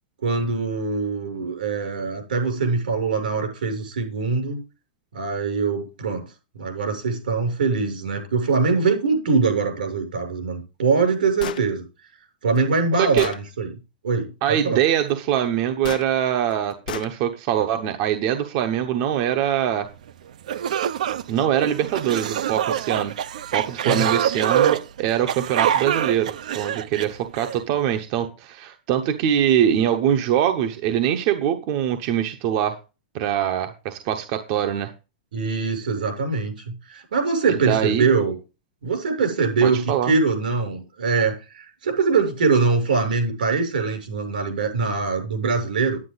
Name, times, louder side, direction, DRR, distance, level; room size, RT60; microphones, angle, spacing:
voice 1, 0.2-4.6 5.1-6.3 6.6-11.8 12.4-13.7 14.0-14.8 23.9-24.1 35.3-38.3 38.8-46.0, right 4 dB, 85° right, 6.8 m, -23 dB
Gunshot gunfire, 11.4-11.7 12.6-12.7 13.2-13.4 15.8-16.1 16.9-17.1, left 9 dB, 70° left, 1.0 m, -31 dB
voice 2, 13.0-13.3 14.4-19.9 21.3-23.1 23.5-32.8 33.1-34.9 37.5-38.1 39.6-40.1, right 10 dB, 30° right, 0.9 m, -23 dB
sound 1, 20.1-20.2 20.5-27.6, right 10 dB, 60° right, 0.7 m, -25 dB
10.5 x 9.8 x 4.0 m
supercardioid pair, 180°, 5 cm